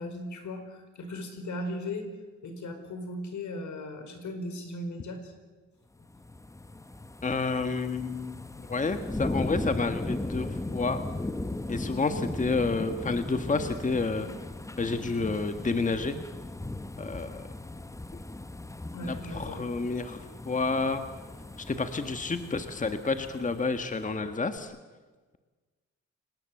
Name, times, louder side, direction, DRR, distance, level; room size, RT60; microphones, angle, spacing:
voice 1, 0.0-2.0 2.4-5.3 18.9-19.6, left 1 dB, 80° left, 6 dB, 5.0 m, -37 dB
sound 1, 6.0-24.1 24.6-24.7, left 2 dB, 10° left, 0.8 m, -37 dB
voice 2, 7.2-11.0 11.7-14.3 14.8-16.1 17.0-17.4 19.0-21.0 21.6-24.7, left 3 dB, 25° left, 8 dB, 1.5 m, -30 dB
29.5 x 18.5 x 7.8 m, 1.3 s
cardioid pair, 105°, 29 cm